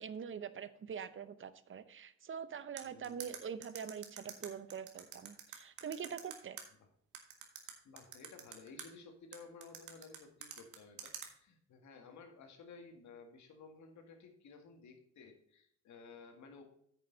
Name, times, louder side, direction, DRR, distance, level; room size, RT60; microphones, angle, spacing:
voice 1, 0.0-6.6, right 7 dB, 40° right, 14 dB, 0.8 m, -44 dB
voice 2, 2.8-3.3 7.6-16.6, left 4 dB, 70° left, 5 dB, 2.0 m, -55 dB
sound 1, 2.8-6.6 7.1-8.9 9.3-11.3, right 9 dB, 85° right, 1.7 m, -47 dB
9.0 x 7.0 x 4.0 m, 0.69 s
cardioid pair, 90°, 30 cm